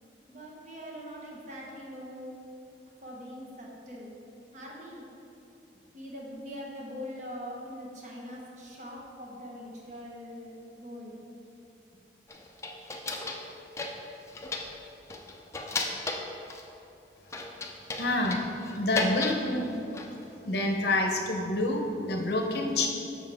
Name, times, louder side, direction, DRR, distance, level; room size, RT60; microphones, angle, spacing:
voice 1, 0.3-2.4 3.0-4.1 4.5-5.1 5.9-11.2 11.9-12.0, equal, 40° right, -3 dB, 1.1 m, -42 dB
sound 1, 12.3-13.5 13.8-14.8 15.1-16.6 17.3-19.4 19.7-20.2, left 2 dB, 15° left, 0.4 m, -35 dB
voice 2, 18.0-18.4 18.7-19.7 20.4-22.9, left 2 dB, 60° left, 2 dB, 0.7 m, -27 dB
7.2 x 6.0 x 3.5 m, 2.9 s
head